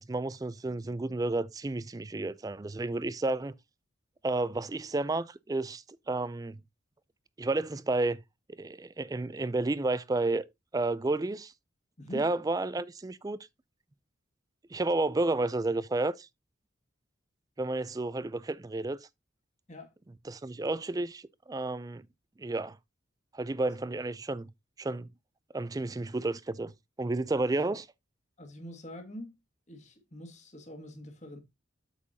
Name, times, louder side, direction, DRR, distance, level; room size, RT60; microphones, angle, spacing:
voice 1, 0.0-3.5 4.2-6.6 7.4-8.2 8.5-10.4 10.7-11.5 12.1-13.4 14.7-16.3 17.6-19.0 20.3-22.0 22.4-22.8 23.3-24.5 24.8-25.1 25.5-26.7 27.0-27.9, right 2 dB, 20° right, 0.3 m, -31 dB
voice 2, 28.4-29.4 29.7-31.4, left 1 dB, 35° left, 1.9 m, -44 dB
8.4 x 7.2 x 2.7 m
head